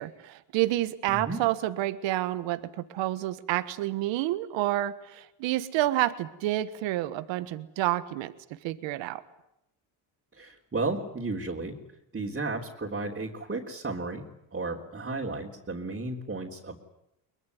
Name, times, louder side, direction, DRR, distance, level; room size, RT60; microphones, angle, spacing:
voice 1, 0.0-8.3 8.6-9.2, right 15 dB, 85° right, 14 dB, 1.4 m, -29 dB
voice 2, 1.1-1.4 10.3-11.8 12.1-14.2 14.5-16.8, right 3 dB, 25° right, -2 dB, 3.6 m, -33 dB
23.0 x 21.0 x 9.6 m, 0.83 s
supercardioid pair, 80°, 44 cm